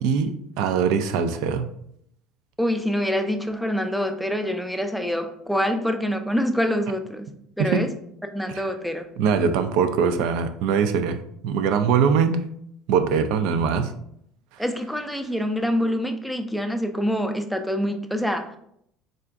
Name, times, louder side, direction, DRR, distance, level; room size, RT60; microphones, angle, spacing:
voice 1, 0.0-1.7 7.6-7.8 8.5-8.7 9.2-12.4 12.9-14.0, right 6 dB, 75° right, 9 dB, 0.4 m, -22 dB
voice 2, 2.6-7.2 7.6-7.9 8.3-9.1 14.6-18.5, equal, ahead, 6 dB, 0.3 m, -25 dB
3.8 x 2.4 x 3.4 m, 0.72 s
cardioid pair, 140°, 0 cm